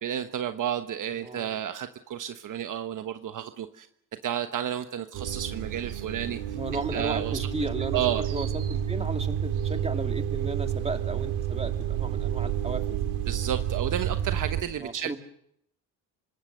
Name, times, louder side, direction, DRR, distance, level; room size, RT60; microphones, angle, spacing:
voice 1, 0.0-3.9 4.2-6.4 6.9-7.4 7.9-8.2 13.3-15.1, right 10 dB, 50° right, 8 dB, 1.2 m, -31 dB
voice 2, 1.2-1.6 6.5-8.0 8.3-13.0 14.8-15.2, right 2 dB, 15° right, 5 dB, 2.6 m, -35 dB
sound 1, 5.1-14.6, right 9 dB, 85° right, 2.6 m, -30 dB
25.5 x 19.5 x 6.6 m, 0.74 s
cardioid pair, 100°, 39 cm